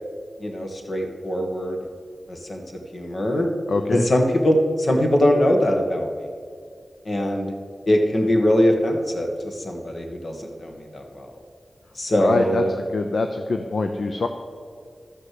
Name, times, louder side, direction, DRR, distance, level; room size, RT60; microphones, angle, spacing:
voice 1, 0.4-1.8 2.3-2.6 2.9-3.5 3.9-6.1 7.1-7.5 7.9-11.3 12.0-12.7, equal, 55° left, 2 dB, 1.9 m, -22 dB
voice 2, 3.7-4.0 12.2-14.3, left 3 dB, 70° left, 6 dB, 0.6 m, -24 dB
13.5 x 6.5 x 7.7 m, 2.2 s
wide cardioid pair, 70°, 0 cm